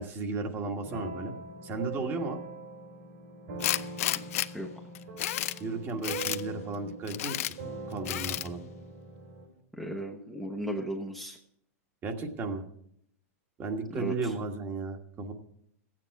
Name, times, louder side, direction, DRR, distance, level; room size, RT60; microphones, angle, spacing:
voice 1, 0.0-1.3 1.6-2.4 5.6-7.4 7.9-8.6 12.0-12.6 13.6-15.3, right 3 dB, 30° right, 4 dB, 1.5 m, -34 dB
sound 1, 0.8-9.5, right 3 dB, 70° right, 5.0 m, -42 dB
Tools, 3.6-4.5 4.9-5.6 6.0-6.4 7.1-7.5 8.0-8.5, left 14 dB, 65° left, 0.5 m, -31 dB
voice 2, 9.7-11.4 13.9-14.3, right 1 dB, ahead, 1 dB, 0.9 m, -36 dB
14.0 x 9.0 x 4.7 m, 0.70 s
hypercardioid pair, 135°, 8 cm